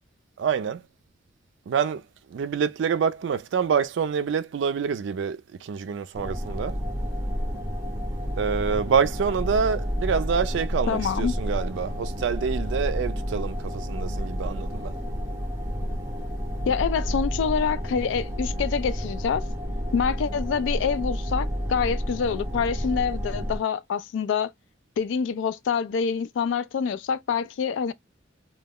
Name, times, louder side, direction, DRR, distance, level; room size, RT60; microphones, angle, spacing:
voice 1, 0.4-0.8 1.7-2.0 2.3-6.8 8.4-14.9, right 6 dB, 80° right, 0.3 m, -26 dB
sound 1, 6.1-23.6, equal, 15° right, 0.6 m, -30 dB
voice 2, 10.9-11.3 16.7-19.4 19.9-24.5 25.0-27.9, left 6 dB, 80° left, 0.3 m, -26 dB
2.2 x 2.0 x 3.4 m
head